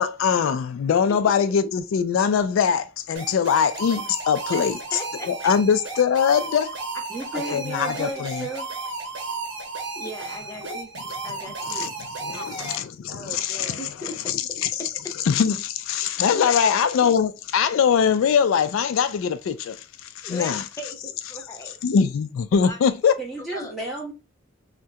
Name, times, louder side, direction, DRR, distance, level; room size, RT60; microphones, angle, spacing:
voice 1, 0.0-4.7 5.3-6.8 7.5-8.5 10.7-10.8 11.7-11.9 12.3-13.8 14.6-14.7 15.3-19.8 20.0-20.6 21.8-23.1, left 7 dB, 85° left, 0.3 m, -22 dB
sound 1, 3.1-12.8, right 3 dB, 60° right, 0.9 m, -34 dB
voice 2, 4.5-5.3 7.5-7.6 9.9-10.9 11.2-11.9 12.3-12.9 13.8-14.2 14.8-15.1 16.3-16.6 20.2-21.8 22.5-22.8 23.4-23.7, equal, 15° left, 0.7 m, -38 dB
voice 3, 7.1-8.7 13.1-13.8 23.2-24.1, right 2 dB, ahead, 1.2 m, -34 dB
2.8 x 2.1 x 3.4 m
head